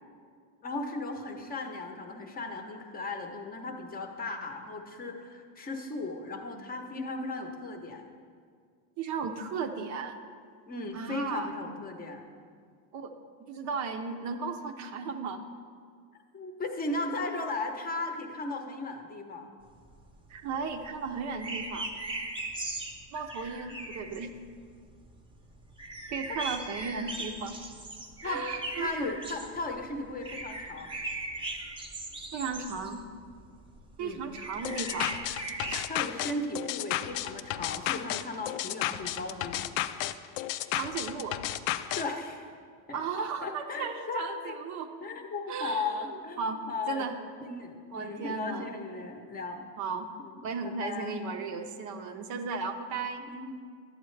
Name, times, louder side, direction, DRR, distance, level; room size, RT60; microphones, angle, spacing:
voice 1, 0.6-8.0 10.7-12.2 16.3-19.5 28.2-28.4 28.7-30.9 34.0-34.2 35.9-39.7 41.9-42.5 42.9-44.6 45.0-47.1 47.4-49.7 50.2-51.2 53.3-53.5, left 3 dB, 20° left, 4 dB, 0.8 m, -36 dB
voice 2, 9.0-10.1 10.9-11.5 12.9-13.1 13.4-15.4 20.3-21.9 23.1-24.3 26.1-27.6 28.2-28.9 32.3-33.0 34.0-35.1 35.6-35.9 40.7-41.4 42.9-44.9 45.5-46.1 46.4-46.6 46.9-47.2 47.9-48.7 49.8-50.1 50.4-53.2, right 5 dB, 45° right, 6 dB, 0.6 m, -35 dB
sound 1, 19.7-35.8, right 2 dB, 15° right, 0.7 m, -39 dB
sound 2, 34.6-42.0, left 13 dB, 70° left, 0.5 m, -33 dB
11.5 x 7.9 x 3.2 m, 2.1 s
supercardioid pair, 125°, 40 cm